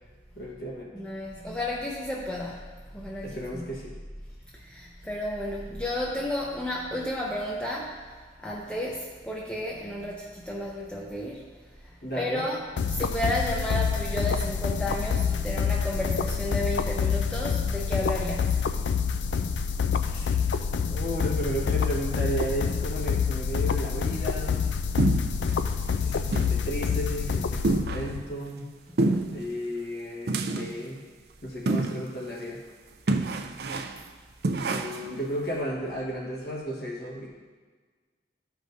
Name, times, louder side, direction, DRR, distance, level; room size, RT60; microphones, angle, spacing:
voice 1, 0.3-0.9 3.2-4.0 12.0-12.4 20.0-20.4 20.9-24.7 26.0-28.7 29.3-31.0 31.4-32.6 34.7-37.3, equal, 60° left, -4 dB, 1.4 m, -34 dB
voice 2, 0.9-2.6 2.9-3.7 4.5-11.5 11.8-12.6 12.9-18.6 28.9-29.2, left 1 dB, 5° left, -3 dB, 0.6 m, -32 dB
sound 1, 12.8-28.2, left 6 dB, 90° left, 0.4 m, -27 dB
sound 2, 25.0-25.6 25.9-26.0 26.3-26.6 26.9-27.0 27.6-28.2 29.0-29.4 30.3-30.8 31.7-32.1 32.4-32.5 33.1-34.0 34.4-35.1, right 2 dB, 65° right, 0.5 m, -27 dB
13.0 x 4.9 x 2.7 m, 1.5 s
head